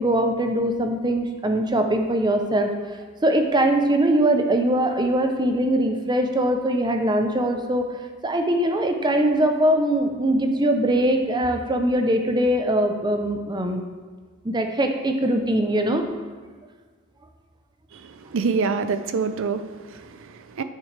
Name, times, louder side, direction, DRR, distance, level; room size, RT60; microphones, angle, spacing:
voice 1, 0.0-7.9 8.2-13.8 14.4-16.1, right 1 dB, 20° right, 5 dB, 0.6 m, -22 dB
voice 2, 17.9-20.6, right 5 dB, 65° right, 10 dB, 0.5 m, -27 dB
9.0 x 6.4 x 3.3 m, 1.4 s
head